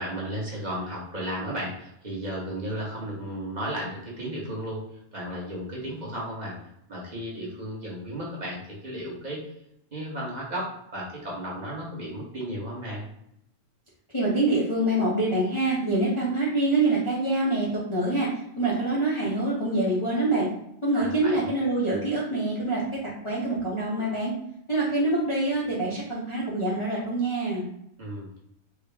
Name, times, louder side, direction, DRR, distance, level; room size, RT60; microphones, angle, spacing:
voice 1, 0.0-4.8 5.1-6.6 6.9-9.4 9.9-13.0 20.9-21.5 28.0-28.3, equal, 35° right, -5 dB, 1.1 m, -34 dB
voice 2, 14.1-18.3 18.6-20.5 20.8-24.3 24.7-27.7, right 2 dB, 30° left, -8 dB, 0.7 m, -25 dB
3.6 x 2.2 x 3.3 m, 0.78 s
omnidirectional pair, 1.3 m